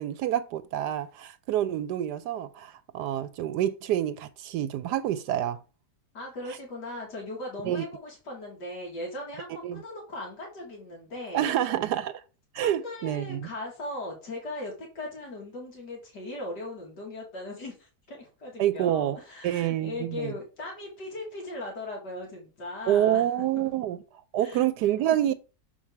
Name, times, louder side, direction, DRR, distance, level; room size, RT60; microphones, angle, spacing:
voice 1, 0.0-5.6 7.6-7.8 9.6-9.8 11.3-12.2 12.5-13.5 18.6-19.2 19.4-20.3 22.9-24.0 24.3-25.3, right 11 dB, 80° right, 1.1 m, -27 dB
voice 2, 6.1-11.5 12.6-23.2 23.6-23.7 24.4-25.2, left 2 dB, 80° left, 2.6 m, -38 dB
7.4 x 4.3 x 4.5 m
omnidirectional pair, 1.8 m